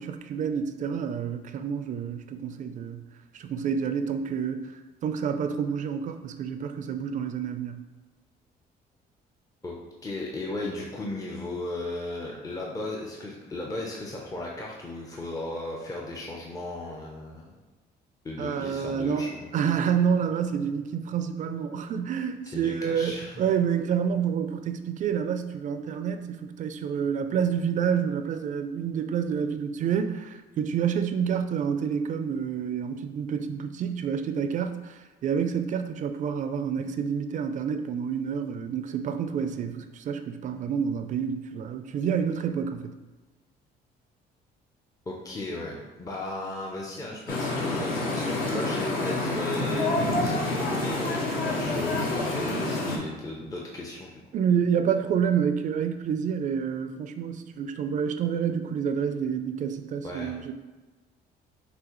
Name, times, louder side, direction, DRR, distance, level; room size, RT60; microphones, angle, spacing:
voice 1, 0.0-3.0 3.3-7.8 18.4-42.9 54.3-60.5, right 7 dB, 50° right, 8 dB, 0.4 m, -28 dB
voice 2, 10.0-17.5 18.2-19.5 22.5-23.4 45.1-54.1 60.0-60.3, left 2 dB, 20° left, -2 dB, 0.7 m, -36 dB
sound 1, 47.3-53.0, left 2 dB, 60° left, 1.0 m, -28 dB
6.1 x 2.8 x 3.1 m, 1.2 s
cardioid pair, 110°, 17 cm